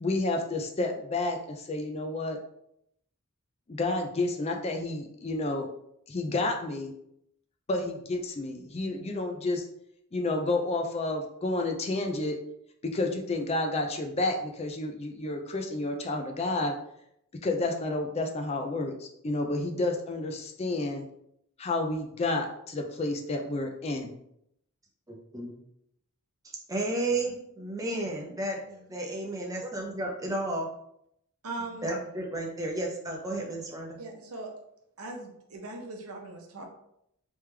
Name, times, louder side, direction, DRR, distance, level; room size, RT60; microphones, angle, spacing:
voice 1, 0.0-2.4 3.7-5.7 6.1-6.9 7.7-9.7 10.1-12.4 12.9-16.8 17.4-21.1 21.6-24.1, left 2 dB, 30° left, 3 dB, 0.4 m, -30 dB
voice 2, 25.1-25.5 26.7-30.7 31.8-34.0, right 2 dB, 15° right, -1 dB, 0.7 m, -32 dB
voice 3, 31.4-31.9 34.0-34.5 35.0-36.7, right 2 dB, 75° right, 2 dB, 0.8 m, -39 dB
3.4 x 3.2 x 3.3 m, 0.75 s
head